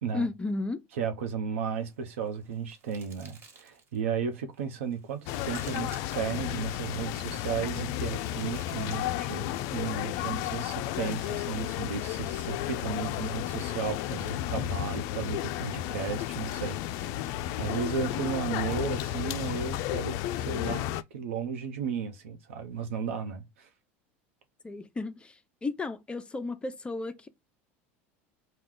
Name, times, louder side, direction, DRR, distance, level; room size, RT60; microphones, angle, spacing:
voice 1, 0.1-0.8 24.6-25.3 25.6-27.3, left 3 dB, 15° left, 0.6 m, -33 dB
voice 2, 0.9-17.1 17.6-23.7, right 6 dB, 90° right, 0.9 m, -34 dB
sound 1, 1.7-4.0 4.6-6.5 7.4-9.5 10.5-12.1, right 4 dB, 35° right, 1.5 m, -55 dB
sound 2, 5.3-21.0, left 13 dB, 60° left, 0.3 m, -33 dB
4.7 x 2.3 x 3.8 m
supercardioid pair, 105°, 7 cm